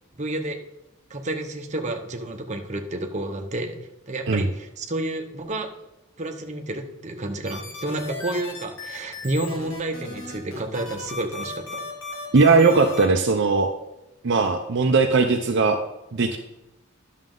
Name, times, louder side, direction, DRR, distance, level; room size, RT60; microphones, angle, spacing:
voice 1, 0.2-0.6 1.1-3.8 4.1-5.7 6.2-11.8, right 2 dB, 35° right, 3 dB, 0.9 m, -30 dB
sound 1, 7.5-13.1, left 3 dB, 75° left, 1.7 m, -36 dB
voice 2, 12.3-13.7 14.2-15.8 16.1-16.4, right 4 dB, 60° right, 4 dB, 0.6 m, -19 dB
11.0 x 6.3 x 3.8 m, 0.92 s
head